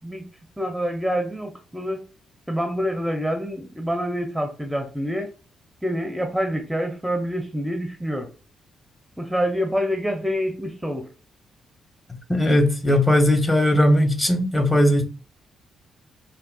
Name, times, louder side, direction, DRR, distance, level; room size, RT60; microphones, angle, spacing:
voice 1, 0.0-2.0 2.5-5.3 5.8-8.3 9.2-11.1, equal, 5° right, 0.6 m, -27 dB
voice 2, 12.3-15.0, left 1 dB, 20° left, 0.9 m, -18 dB
3.6 x 2.2 x 2.2 m
figure-of-eight pair, 40°, 0 cm